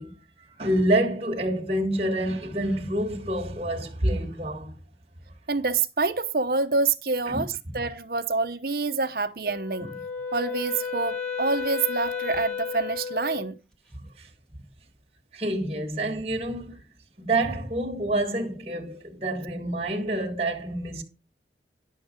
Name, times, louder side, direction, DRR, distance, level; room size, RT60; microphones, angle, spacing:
voice 1, 0.0-4.8 7.3-7.5 9.8-9.9 14.2-14.3 15.3-16.9 17.2-21.0, right 1 dB, 35° right, 1.6 m, -27 dB
voice 2, 5.5-9.9 10.3-13.6, right 4 dB, 55° right, 0.9 m, -27 dB
Wind instrument woodwind instrument, 9.4-13.5, left 6 dB, 5° left, 1.7 m, -33 dB
11.0 x 6.4 x 5.1 m
head